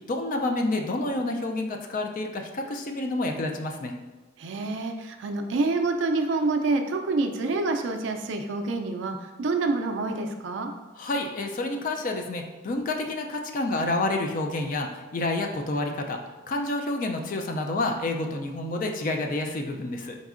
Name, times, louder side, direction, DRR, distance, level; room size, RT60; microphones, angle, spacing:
voice 1, 0.1-3.9 10.9-16.2 16.5-20.2, left 2 dB, 40° left, 3 dB, 0.3 m, -29 dB
voice 2, 4.4-10.7, right 3 dB, 60° right, 5 dB, 0.4 m, -27 dB
4.0 x 3.6 x 2.4 m, 1.2 s
head